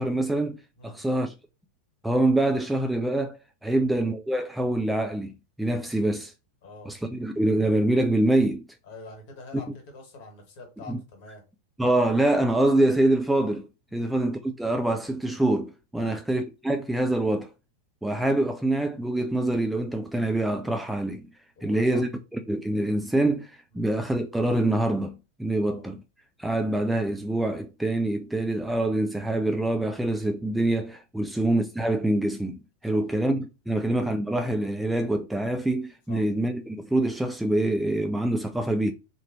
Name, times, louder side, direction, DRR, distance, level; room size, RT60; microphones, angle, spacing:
voice 1, 0.0-0.6 0.8-1.3 2.0-5.3 5.6-6.3 6.9-8.6 10.9-11.0 11.8-17.5 18.0-21.3 21.6-26.0 26.4-38.9, right 1 dB, 5° right, 0.3 m, -25 dB
voice 2, 6.6-6.9 8.9-11.4 13.9-14.2 16.0-16.2 21.6-22.0 23.7-23.9 25.6-25.8 31.2-31.3 32.8-33.0 36.1-36.2, left 3 dB, 50° left, 1.4 m, -46 dB
2.9 x 2.5 x 2.9 m
figure-of-eight pair, 90°, 0 cm